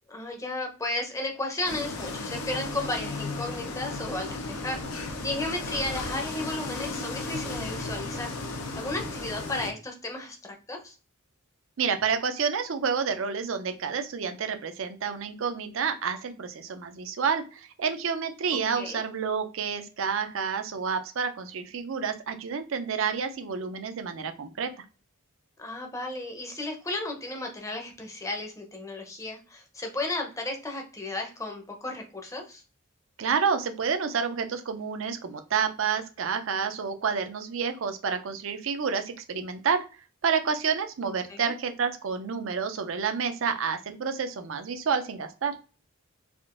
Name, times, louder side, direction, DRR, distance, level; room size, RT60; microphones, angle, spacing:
voice 1, 0.1-8.3 8.7-10.9 18.7-19.0 25.6-32.6 41.3-41.5, left 2 dB, 15° left, 3 dB, 0.6 m, -34 dB
sound 1, 1.7-9.7, left 3 dB, 90° left, 0.6 m, -35 dB
voice 2, 11.8-24.8 33.2-39.8 40.2-45.5, right 6 dB, 60° right, 8 dB, 0.5 m, -29 dB
3.5 x 2.4 x 2.4 m, 0.34 s
head